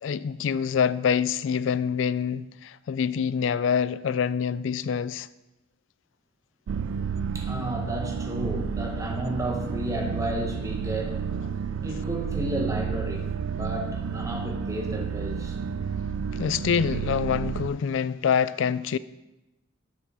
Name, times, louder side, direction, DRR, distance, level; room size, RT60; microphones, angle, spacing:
voice 1, 0.0-5.3 16.3-19.0, left 7 dB, 75° left, 0.3 m, -26 dB
sound 1, 6.7-17.7, right 6 dB, 90° right, 0.3 m, -31 dB
voice 2, 7.3-11.2 11.8-15.6, right 1 dB, 15° right, 1.2 m, -32 dB
6.8 x 5.8 x 6.2 m
head